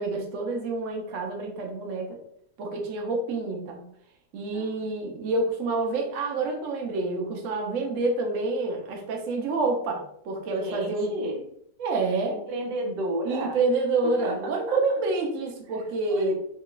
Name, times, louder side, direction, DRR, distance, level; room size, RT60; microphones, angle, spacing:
voice 1, 0.0-2.2 2.6-3.9 4.3-11.1 11.8-12.4 13.3-16.3, right 3 dB, 60° right, 1 dB, 0.9 m, -28 dB
voice 2, 10.6-11.4 12.3-13.6 14.0-15.0 16.1-16.3, right 1 dB, 85° right, 2 dB, 1.3 m, -32 dB
3.1 x 2.2 x 3.7 m, 0.71 s
omnidirectional pair, 1.8 m